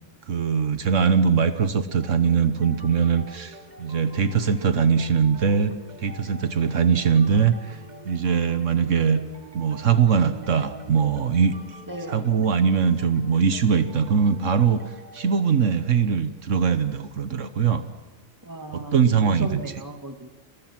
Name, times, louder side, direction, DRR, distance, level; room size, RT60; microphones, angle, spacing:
voice 1, 0.3-7.8 8.0-9.2 9.5-11.6 12.1-14.8 15.1-17.8 18.7-19.6, right 6 dB, 75° right, 10 dB, 1.4 m, -21 dB
sound 1, 2.0-16.4, right 3 dB, 35° right, 1.4 m, -45 dB
voice 2, 11.9-12.3 18.4-20.3, right 2 dB, 15° right, 5 dB, 2.0 m, -36 dB
30.0 x 22.5 x 6.1 m, 1.2 s
omnidirectional pair, 1.3 m